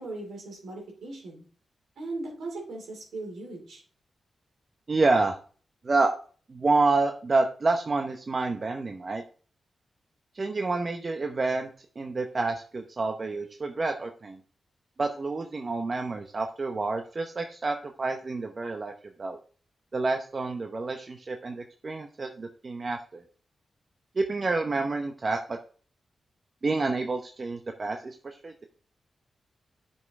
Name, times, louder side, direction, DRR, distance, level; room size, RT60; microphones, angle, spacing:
voice 1, 0.0-1.4 2.0-3.8, right 2 dB, 80° right, 0 dB, 2.8 m, -38 dB
voice 2, 4.9-5.3 5.8-6.1 6.5-9.2 10.3-11.7 12.0-14.4 15.0-18.9 19.2-19.4 19.9-23.2 24.2-25.6 26.6-28.7, right 3 dB, 50° right, 4 dB, 0.8 m, -28 dB
9.3 x 5.5 x 3.6 m, 0.42 s
supercardioid pair, 40°, 0 cm